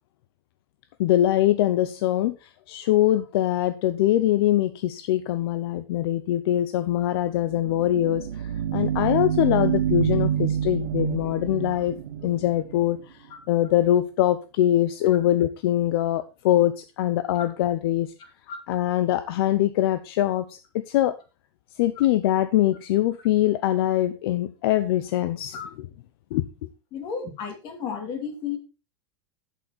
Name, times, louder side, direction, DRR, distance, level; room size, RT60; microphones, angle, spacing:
voice 1, 1.0-11.9 12.2-13.0 13.5-18.1 18.7-21.1 21.8-25.9 26.3-26.4, left 13 dB, 65° left, 0.7 m, -23 dB
sound 1, 7.5-13.0, right 9 dB, 90° right, 0.8 m, -27 dB
voice 2, 26.9-28.6, left 6 dB, 40° left, 2.6 m, -33 dB
8.3 x 7.7 x 4.3 m
supercardioid pair, 150°, 13 cm